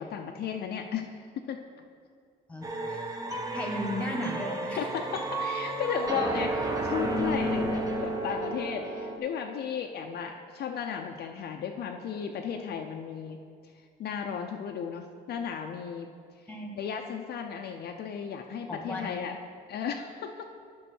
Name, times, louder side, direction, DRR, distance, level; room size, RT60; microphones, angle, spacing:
voice 1, 0.0-1.6 4.8-13.4 14.0-16.5 16.8-19.4 19.7-20.5, left 7 dB, 60° left, 3 dB, 0.5 m, -35 dB
voice 2, 2.5-3.0 3.5-4.8 16.5-16.8 18.7-19.2, left 1 dB, 5° left, 1 dB, 1.4 m, -35 dB
sound 1, 2.6-9.2, right 1 dB, 20° right, 0.8 m, -32 dB
9.2 x 5.4 x 6.2 m, 2.1 s
cardioid pair, 145°, 19 cm